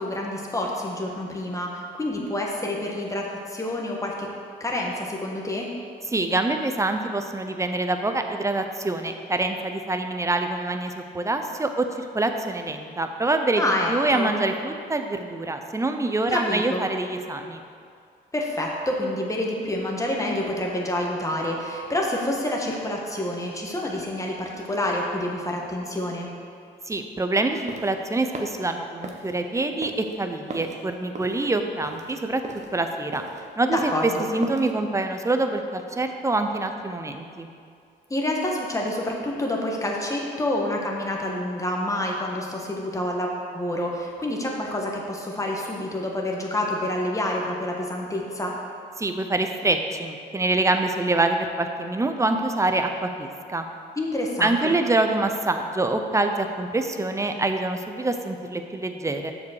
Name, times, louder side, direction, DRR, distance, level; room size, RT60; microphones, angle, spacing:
voice 1, 0.0-4.3 4.6-5.7 13.6-14.3 16.3-16.8 18.3-26.3 33.6-34.3 38.1-48.6 54.0-54.7, left 1 dB, 15° left, -1 dB, 1.5 m, -28 dB
voice 2, 6.1-13.6 13.9-17.6 26.9-32.4 32.7-33.2 33.6-37.5 49.0-53.6 54.4-59.3, right 2 dB, 15° right, 6 dB, 0.7 m, -25 dB
sound 1, 27.4-34.8, right 2 dB, 35° right, 1.1 m, -39 dB
6.7 x 5.1 x 6.5 m, 2.3 s
cardioid pair, 75°, 20 cm